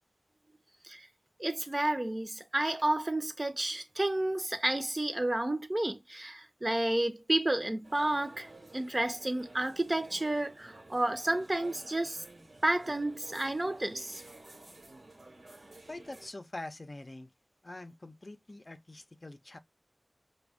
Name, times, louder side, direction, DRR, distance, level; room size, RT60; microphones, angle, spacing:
voice 1, 1.4-12.2 12.6-14.2, right 1 dB, 40° right, 0.6 m, -31 dB
sound 1, 7.8-16.3, right 2 dB, 90° right, 1.1 m, -52 dB
voice 2, 15.9-17.3 17.6-19.6, left 2 dB, 50° left, 0.5 m, -44 dB
4.9 x 2.2 x 3.4 m
wide cardioid pair, 50°, 0 cm